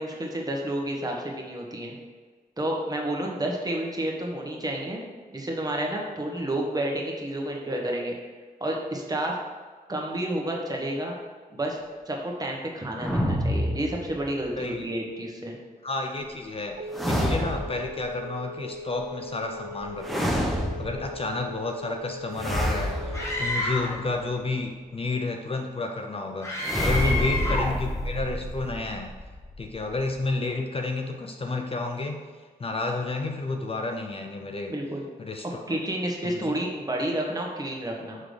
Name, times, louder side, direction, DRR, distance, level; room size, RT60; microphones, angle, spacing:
voice 1, 0.0-1.9 2.6-5.0 5.3-8.1 8.6-9.4 9.9-11.1 11.5-11.8 12.0-15.6 27.0-27.6 34.7-35.0 35.7-38.2, right 1 dB, 25° right, -1 dB, 1.4 m, -30 dB
sound 1, 13.0-14.5 16.9-18.0 20.0-21.2 22.4-24.2 26.6-30.2, equal, ahead, 0.9 m, -28 dB
voice 2, 14.6-14.9 15.8-29.2 29.6-32.3 32.6-34.7 35.2-35.8 36.2-36.6, left 3 dB, 35° left, 4 dB, 0.6 m, -31 dB
Telephone, 16.2-23.6, left 1 dB, 80° right, 0.6 m, -40 dB
Screaming, 23.1-24.0 26.4-27.8, left 1 dB, 20° left, 1.8 m, -29 dB
6.5 x 3.6 x 5.1 m, 1.5 s
cardioid pair, 70°, 16 cm